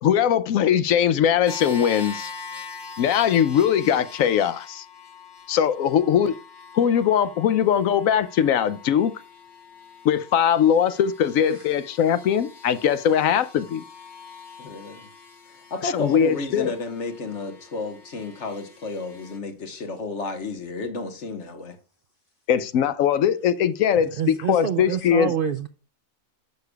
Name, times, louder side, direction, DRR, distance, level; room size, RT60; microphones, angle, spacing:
voice 1, 0.0-2.3 3.0-4.8 5.5-6.3 6.7-9.1 10.0-13.8 15.8-16.7 22.5-25.3, left 9 dB, 75° left, 1.0 m, -21 dB
sound 1, 1.5-19.4, left 4 dB, 20° left, 0.9 m, -43 dB
voice 2, 14.6-15.1 15.5-21.8, left 3 dB, 55° left, 1.5 m, -32 dB
voice 3, 24.2-25.7, right 8 dB, 65° right, 0.5 m, -27 dB
10.5 x 6.6 x 2.3 m
omnidirectional pair, 1.4 m